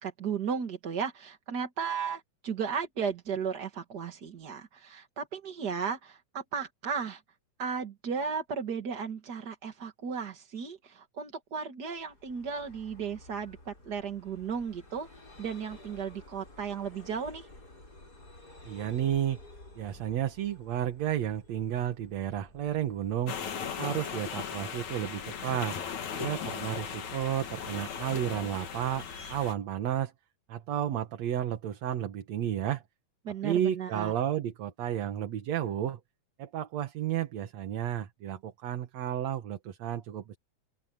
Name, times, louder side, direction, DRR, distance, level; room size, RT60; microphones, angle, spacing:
voice 1, 0.0-7.2 7.6-15.1 15.4-17.5 33.2-34.1, right 6 dB, 40° right, 1.8 m, -35 dB
Vehicle, 12.0-27.4, left 2 dB, 30° left, 6.9 m, -54 dB
voice 2, 18.7-19.4 19.8-23.4 23.8-25.8 26.2-30.1 30.5-32.8 33.4-36.0 36.4-40.4, right 11 dB, 65° right, 2.5 m, -32 dB
sound 1, 23.3-29.5, left 7 dB, 65° left, 3.4 m, -37 dB
open air
omnidirectional pair, 3.5 m